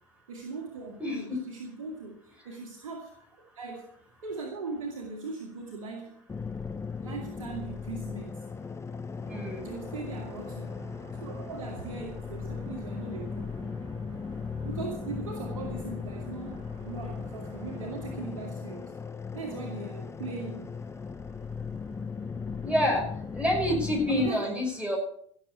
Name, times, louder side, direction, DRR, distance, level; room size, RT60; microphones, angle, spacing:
voice 1, 0.3-3.1 3.6-3.9 4.2-6.2 7.0-8.4 9.6-10.9 11.2-13.5 14.6-18.9 19.3-20.7 24.1-24.4, right 3 dB, 75° right, 0 dB, 2.1 m, -39 dB
voice 2, 1.0-1.4 9.3-9.7 22.6-23.0 23.3-25.0, left 1 dB, 5° right, 0 dB, 5.7 m, -27 dB
sound 1, 6.3-24.3, left 5 dB, 15° left, 0.7 m, -37 dB
sound 2, 9.2-18.2, right 2 dB, 30° right, 6.4 m, -49 dB
16.5 x 7.3 x 7.0 m, 0.64 s
figure-of-eight pair, 70°, 17 cm